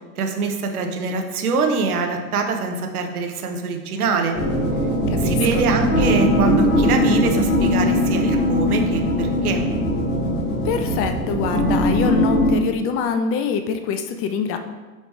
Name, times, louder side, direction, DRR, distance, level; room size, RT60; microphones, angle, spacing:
voice 1, 0.2-4.4 5.2-9.6, right 4 dB, 70° right, 4 dB, 1.0 m, -24 dB
sound 1, 4.3-12.5, left 1 dB, 55° left, 1.8 m, -20 dB
voice 2, 5.1-5.7 10.6-14.6, left 6 dB, 30° left, 7 dB, 0.5 m, -24 dB
8.2 x 3.3 x 4.6 m, 1.3 s
figure-of-eight pair, 80°, 45 cm